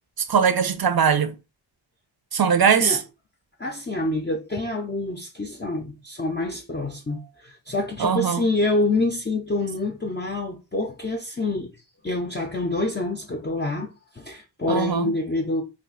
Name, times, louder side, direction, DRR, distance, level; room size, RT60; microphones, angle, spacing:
voice 1, 0.3-1.3 2.3-3.0 8.0-8.4 14.7-15.1, right 7 dB, 50° right, 0.5 m, -20 dB
voice 2, 3.6-11.7 12.0-15.6, left 2 dB, 25° left, 0.5 m, -27 dB
2.4 x 2.4 x 3.7 m
wide cardioid pair, 40°, 47 cm